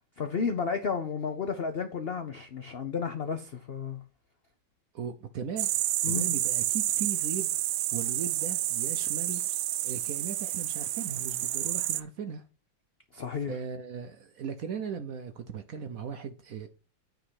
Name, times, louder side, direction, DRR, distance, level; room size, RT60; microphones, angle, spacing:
voice 1, 0.2-4.0 6.0-6.3 13.1-13.6, left 5 dB, 75° left, 0.5 m, -32 dB
voice 2, 4.9-5.7 6.0-7.5 7.9-9.4 9.8-12.4 13.5-16.7, right 6 dB, 65° right, 0.9 m, -37 dB
sound 1, 5.6-12.0, right 14 dB, 85° right, 1.3 m, -29 dB
9.3 x 3.9 x 5.5 m
omnidirectional pair, 2.1 m